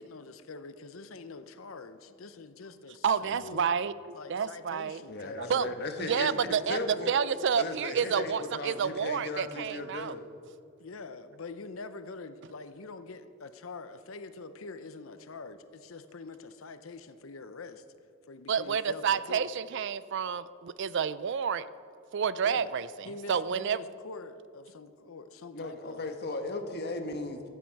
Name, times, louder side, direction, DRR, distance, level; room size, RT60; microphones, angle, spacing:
voice 1, 0.0-3.7 4.1-5.7 10.8-17.8 18.3-19.5 22.4-22.7 23.0-26.0, left 3 dB, 75° left, 11 dB, 0.7 m, -45 dB
voice 2, 3.0-5.0 5.4-10.2 18.5-21.7 22.1-23.8, right 7 dB, 60° right, 16 dB, 0.4 m, -30 dB
voice 3, 5.1-6.3 6.7-7.1 7.5-10.2 25.5-27.4, left 2 dB, 50° left, 6 dB, 1.4 m, -36 dB
15.5 x 12.5 x 4.7 m, 2.6 s
head